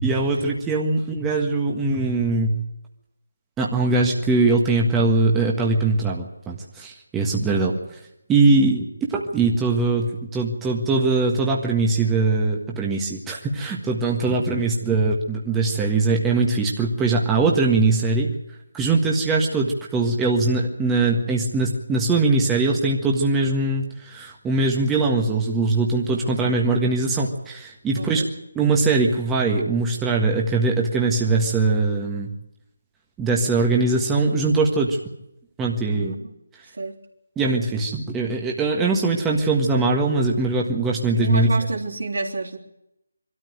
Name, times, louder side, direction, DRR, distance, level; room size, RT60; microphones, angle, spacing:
voice 1, 0.0-2.5 3.6-7.7 8.3-18.3 18.7-28.2 28.5-32.3 33.2-35.0 35.6-36.1 37.4-41.5, right 3 dB, 10° right, -1 dB, 1.6 m, -21 dB
voice 2, 7.5-7.8 26.1-26.5 27.9-28.3 35.9-36.3 36.7-37.0 41.1-42.6, right 3 dB, 70° right, 0 dB, 3.4 m, -29 dB
23.0 x 13.0 x 9.3 m, 0.85 s
figure-of-eight pair, 160°, 0 cm